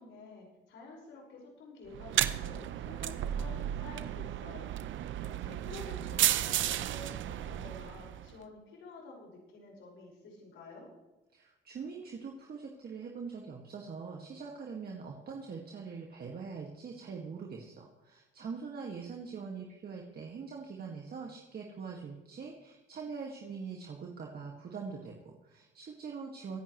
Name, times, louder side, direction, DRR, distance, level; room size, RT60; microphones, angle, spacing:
voice 1, 0.0-4.7 5.3-10.9, left 3 dB, 75° left, -2 dB, 5.5 m, -50 dB
sound 1, 1.9-8.3, right 12 dB, 75° right, 0.7 m, -33 dB
voice 2, 11.3-26.6, right 5 dB, 50° right, 0 dB, 2.0 m, -43 dB
24.0 x 10.0 x 3.2 m, 1.1 s
cardioid pair, 90°, 20 cm